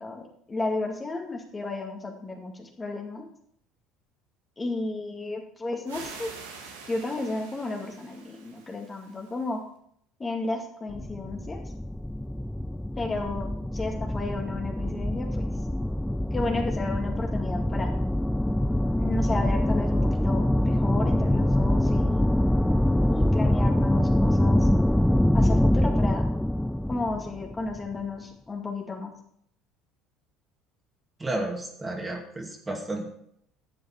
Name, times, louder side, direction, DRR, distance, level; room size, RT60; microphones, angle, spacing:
voice 1, 0.0-3.3 4.6-6.3 6.9-9.6 10.2-11.6 13.0-15.5 16.3-17.9 19.0-22.3 23.1-24.7 25.3-26.3 26.9-29.1, left 3 dB, 25° left, 1 dB, 2.2 m, -33 dB
sound 1, 5.9-9.5, right 5 dB, 85° right, 1.7 m, -45 dB
sound 2, 10.9-27.9, left 1 dB, 5° left, 0.3 m, -24 dB
voice 2, 31.2-33.1, right 2 dB, 20° right, 2 dB, 2.4 m, -32 dB
11.5 x 7.8 x 4.5 m, 0.68 s
hypercardioid pair, 70°, 0 cm